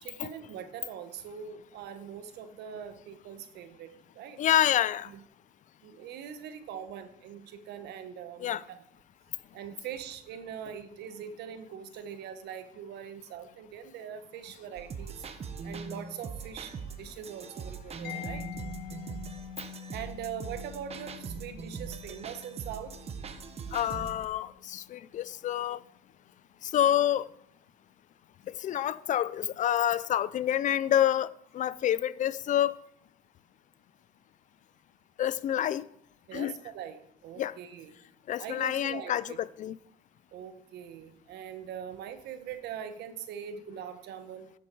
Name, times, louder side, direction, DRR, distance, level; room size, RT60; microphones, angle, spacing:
voice 1, 0.0-4.4 5.1-5.2 5.8-8.8 9.5-15.2 15.6-18.5 19.9-23.0 36.3-37.9 38.4-39.4 40.3-44.5, right 8 dB, 75° right, 1.1 m, -42 dB
voice 2, 4.4-5.1 8.4-8.6 23.7-25.8 26.6-27.3 28.6-31.3 31.5-32.7 35.2-35.9 36.3-36.5 37.4-37.6 38.3-39.8, left 11 dB, 50° left, 0.4 m, -28 dB
sound 1, 14.8-24.3, right 5 dB, 35° right, 0.9 m, -41 dB
Mallet percussion, 18.0-25.6, left 9 dB, 75° left, 1.8 m, -46 dB
11.0 x 7.2 x 4.6 m
cardioid pair, 110°, 17 cm